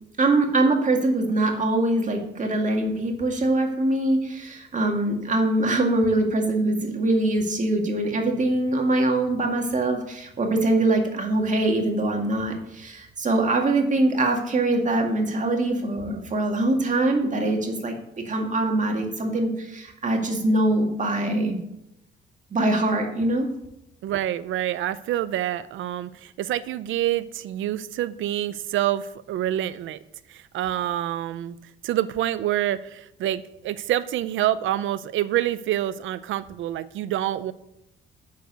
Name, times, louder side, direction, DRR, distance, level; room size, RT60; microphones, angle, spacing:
voice 1, 0.2-21.6 22.5-23.5, right 2 dB, 40° right, 2 dB, 2.1 m, -23 dB
voice 2, 24.0-30.0 30.3-31.6 31.8-37.5, right 13 dB, 75° right, 15 dB, 0.5 m, -27 dB
9.2 x 6.6 x 6.6 m, 0.81 s
cardioid pair, 90°, 20 cm